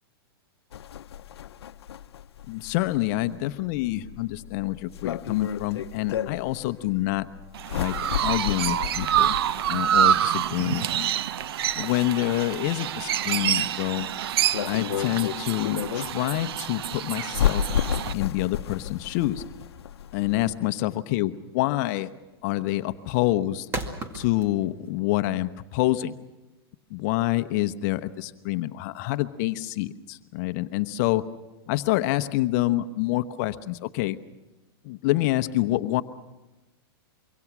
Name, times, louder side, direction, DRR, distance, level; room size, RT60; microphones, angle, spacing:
sound 1, 0.7-20.6, left 10 dB, 90° left, 0.8 m, -33 dB
voice 1, 2.5-7.3 7.7-7.9 8.2-9.4 9.7-11.1 11.8-14.1 14.6-17.6 18.1-19.4 20.1-22.1 22.4-23.7 24.1-26.2 26.9-31.2 31.7-34.2 34.8-36.0, left 16 dB, 45° left, 10 dB, 0.9 m, -27 dB
Chirp tweet, 7.5-18.1, right 10 dB, 70° right, 0.7 m, -27 dB
sound 2, 18.6-25.0, right 2 dB, 20° right, 2.1 m, -39 dB
25.5 x 24.0 x 6.1 m, 1.1 s
hypercardioid pair, 145°, 13 cm